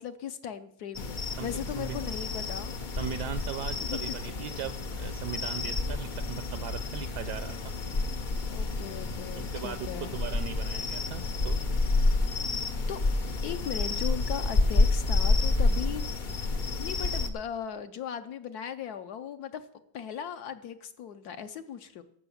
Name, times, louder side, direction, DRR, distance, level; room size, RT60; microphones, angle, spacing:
voice 1, 0.0-2.8 3.8-4.0 8.5-10.2 12.9-13.0 13.4-16.1 16.8-19.6 19.9-22.0, left 8 dB, 65° left, 9 dB, 1.1 m, -38 dB
sound 1, 0.9-17.3, left 3 dB, 85° left, 0.4 m, -29 dB
voice 2, 3.0-7.6 9.3-11.6, right 9 dB, 75° right, 10 dB, 1.1 m, -38 dB
12.5 x 6.3 x 7.1 m, 0.75 s
omnidirectional pair, 2.0 m